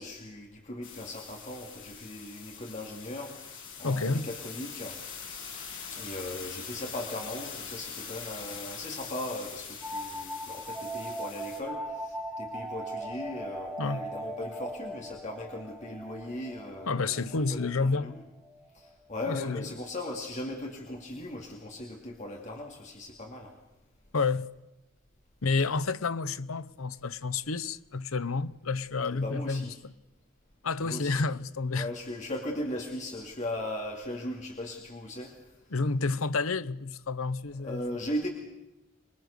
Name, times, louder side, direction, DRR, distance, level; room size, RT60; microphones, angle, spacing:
voice 1, 0.0-5.0 5.9-17.2 17.5-18.2 18.7-23.5 29.1-29.7 30.8-31.2 31.7-35.5 37.6-38.3, left 1 dB, 35° left, 2.6 m, -38 dB
sound 1, 0.8-11.6, left 6 dB, 65° left, 6.2 m, -43 dB
voice 2, 3.8-4.3 13.8-14.1 16.9-18.1 19.2-19.7 24.1-24.5 25.4-29.9 30.6-31.9 35.7-37.8, left 4 dB, 85° left, 0.9 m, -30 dB
sound 2, 9.8-19.2, right 1 dB, 5° right, 1.9 m, -40 dB
26.5 x 22.0 x 6.7 m
head